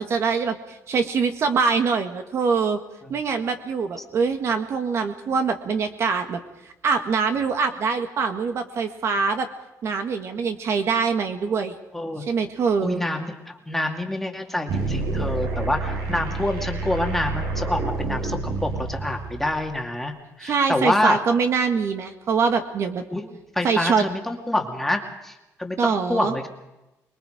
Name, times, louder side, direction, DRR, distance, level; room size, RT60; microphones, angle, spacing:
voice 1, 0.0-2.8 3.1-6.4 6.8-9.5 9.8-11.8 12.2-13.0 20.4-23.0 23.6-24.1 25.8-26.3, right 5 dB, 45° right, 7 dB, 1.8 m, -24 dB
voice 2, 11.9-12.2 12.8-20.1 20.4-21.2 23.1-25.3 25.6-26.5, left 1 dB, 5° left, 2 dB, 2.3 m, -27 dB
sound 1, 14.7-19.7, right 3 dB, 75° right, 7.2 m, -28 dB
25.5 x 22.0 x 5.1 m, 0.96 s
cardioid pair, 165°, 6 cm